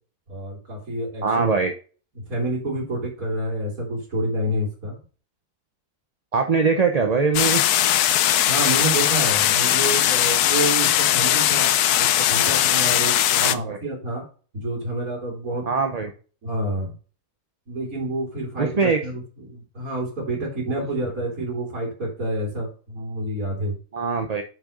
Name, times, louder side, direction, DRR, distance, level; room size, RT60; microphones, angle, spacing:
voice 1, 0.3-1.5 2.2-5.0 8.5-11.7 12.0-14.2 14.5-15.8 16.4-16.9 17.7-23.8, right 1 dB, 65° right, -2 dB, 3.6 m, -28 dB
voice 2, 1.2-1.7 6.3-7.6 13.4-13.8 15.7-16.1 18.6-19.0 20.8-20.9 23.9-24.4, right 5 dB, 35° right, 4 dB, 0.7 m, -22 dB
sound 1, 7.3-13.5, left 12 dB, 90° left, 1.2 m, -19 dB
7.0 x 6.3 x 5.1 m, 0.39 s
omnidirectional pair, 1.6 m